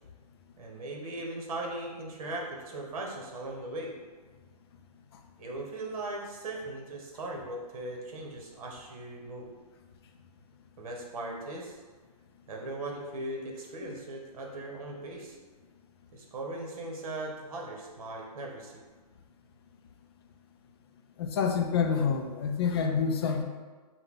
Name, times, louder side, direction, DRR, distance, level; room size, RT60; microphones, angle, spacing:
voice 1, 0.6-3.9 5.4-9.5 10.8-11.8 12.5-15.4 16.1-18.8, right 2 dB, 60° right, 0 dB, 1.2 m, -39 dB
voice 2, 21.2-23.4, left 6 dB, 40° left, 4 dB, 0.4 m, -27 dB
5.3 x 2.3 x 3.7 m, 1.4 s
hypercardioid pair, 155°, 21 cm